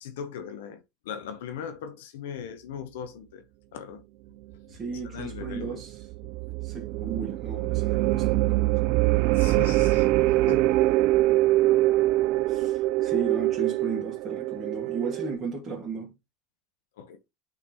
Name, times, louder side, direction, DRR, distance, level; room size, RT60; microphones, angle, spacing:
voice 1, 0.0-3.4 3.7-4.0 5.0-5.8 9.3-10.1 10.4-10.9 12.6-12.7 17.0-17.2, left 8 dB, 75° left, 0.9 m, -39 dB
voice 2, 4.7-6.0 6.6-8.6 12.5-16.1, right 4 dB, 30° right, 2.0 m, -35 dB
sound 1, 5.0-15.4, right 17 dB, 60° right, 0.3 m, -24 dB
8.9 x 3.9 x 2.9 m
hypercardioid pair, 90°, 0 cm